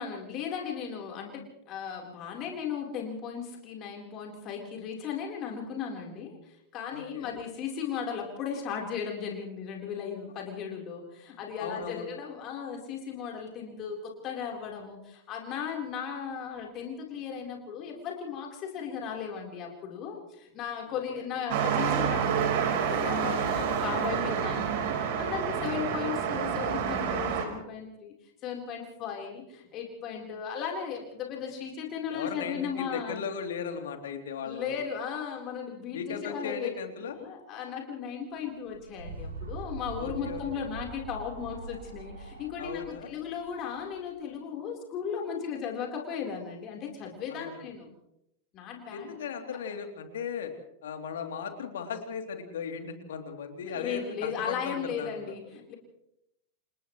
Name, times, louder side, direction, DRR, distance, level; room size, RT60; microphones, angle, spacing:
voice 1, 0.0-28.1 28.4-33.2 34.4-36.7 37.1-47.9 48.5-49.1 53.7-55.7, left 7 dB, 35° left, 0 dB, 4.0 m, -36 dB
voice 2, 6.9-7.4 11.6-12.1 21.1-21.3 23.2-23.7 25.6-25.7 32.1-34.8 35.9-37.1 39.9-40.6 42.6-43.1 47.3-47.6 48.9-50.5 50.8-55.3, left 6 dB, 60° left, 5 dB, 3.1 m, -37 dB
sound 1, 21.5-27.4, right 7 dB, 50° right, 4.3 m, -28 dB
sound 2, 38.5-44.1, right 3 dB, 70° right, 3.5 m, -43 dB
29.0 x 28.5 x 3.2 m, 0.82 s
figure-of-eight pair, 90°, 0 cm